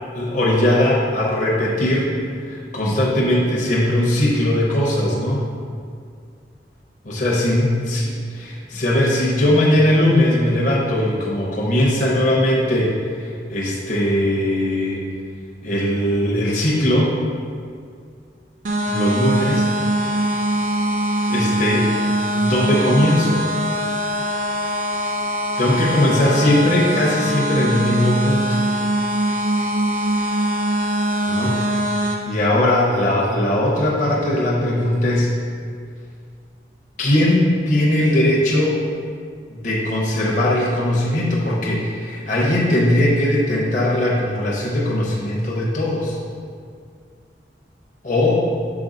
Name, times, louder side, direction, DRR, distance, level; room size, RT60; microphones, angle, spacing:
voice 1, 0.1-2.1 2.5-5.4 7.0-15.0 15.6-17.1 18.9-19.7 21.3-21.9 22.4-23.4 25.6-28.6 31.3-31.6 31.9-35.3 37.0-38.8 39.5-46.2 48.0-48.4, left 1 dB, 45° left, -4 dB, 0.8 m, -19 dB
sound 1, 18.6-32.2, right 1 dB, 45° right, 0.5 m, -22 dB
6.0 x 4.6 x 3.9 m, 2.2 s
head